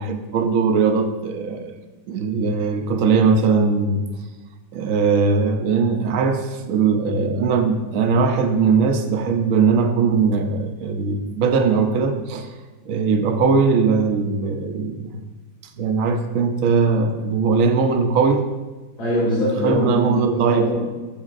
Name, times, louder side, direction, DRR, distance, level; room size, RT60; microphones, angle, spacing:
voice 1, 0.0-1.7 2.1-4.0 4.7-12.5 12.9-15.2 15.8-18.4 19.6-20.7, right 5 dB, 75° right, 6 dB, 0.7 m, -20 dB
voice 2, 19.0-20.8, left 1 dB, 90° left, -10 dB, 3.6 m, -22 dB
10.5 x 7.2 x 2.5 m, 1.2 s
omnidirectional pair, 2.1 m